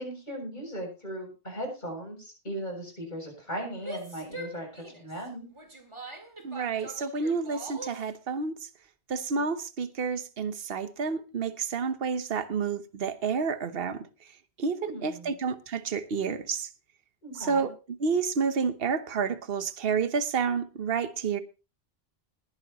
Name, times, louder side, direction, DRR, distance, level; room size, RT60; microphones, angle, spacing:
voice 1, 0.0-5.5 14.8-15.3 17.2-17.7, equal, 45° left, 7.6 m, -38 dB
Female speech woman speaking / Yell, 3.7-8.1, right 1 dB, 25° right, 2.1 m, -43 dB
voice 2, 6.4-8.7 9.1-14.1 14.6-16.7 17.3-17.7 18.0-21.4, right 5 dB, 65° right, 1.2 m, -29 dB
20.5 x 9.6 x 3.0 m
omnidirectional pair, 1.1 m